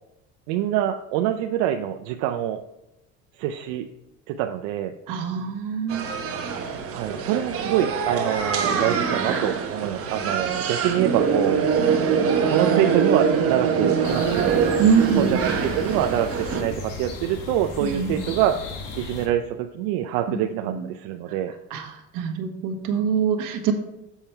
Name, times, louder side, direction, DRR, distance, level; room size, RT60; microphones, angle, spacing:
voice 1, 0.5-2.6 3.4-3.9 4.3-4.9 6.9-11.6 12.5-14.7 15.2-18.6 19.0-21.5, right 11 dB, 90° right, 5 dB, 0.5 m, -25 dB
voice 2, 5.1-6.1 14.8-15.4 17.8-18.4 20.3-20.9 21.7-23.7, right 6 dB, 65° right, 4 dB, 1.4 m, -24 dB
sound 1, 5.9-16.6, right 6 dB, 40° right, 1.1 m, -24 dB
sound 2, 14.0-19.3, left 3 dB, 65° left, 1.8 m, -36 dB
7.2 x 5.6 x 4.5 m, 0.90 s
cardioid pair, 130°, 34 cm